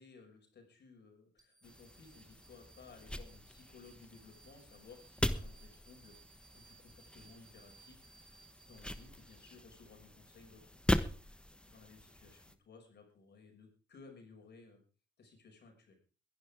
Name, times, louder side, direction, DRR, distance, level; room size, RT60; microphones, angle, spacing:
voice 1, 0.0-8.4 8.6-11.4 11.7-14.8 15.2-16.0, left 4 dB, 55° left, 2 dB, 6.0 m, -58 dB
sound 1, 1.4-9.9, right 7 dB, 20° right, 4.1 m, -64 dB
sound 2, 1.6-12.6, left 1 dB, 5° left, 1.2 m, -41 dB
22.0 x 11.5 x 3.6 m, 0.36 s
cardioid pair, 90°, 20 cm